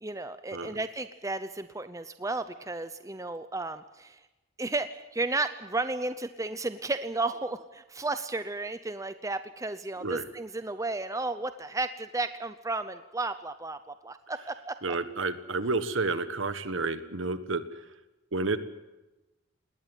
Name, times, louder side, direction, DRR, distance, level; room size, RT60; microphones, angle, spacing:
voice 1, 0.0-4.2 4.6-14.8, right 2 dB, 15° right, 11 dB, 0.7 m, -33 dB
voice 2, 14.8-17.9 18.3-18.6, right 3 dB, 65° right, 12 dB, 1.6 m, -30 dB
19.5 x 19.5 x 9.2 m, 1.1 s
head